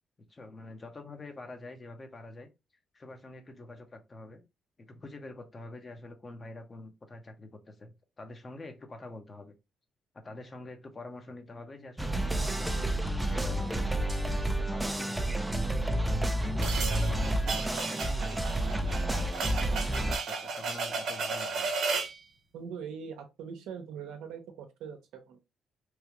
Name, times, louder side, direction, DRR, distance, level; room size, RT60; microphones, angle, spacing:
voice 1, 0.3-2.5 2.9-4.4 4.8-9.5 10.2-12.9 13.2-13.9 14.3-16.1 16.4-18.8 19.7-21.7, left 2 dB, 30° left, 0.9 m, -46 dB
sound 1, 12.0-20.2, right 1 dB, 10° right, 0.5 m, -30 dB
sound 2, 16.6-22.2, right 4 dB, 70° right, 1.1 m, -34 dB
voice 2, 22.5-25.4, right 7 dB, 90° right, 0.8 m, -42 dB
3.2 x 2.4 x 2.9 m
cardioid pair, 90°, 0 cm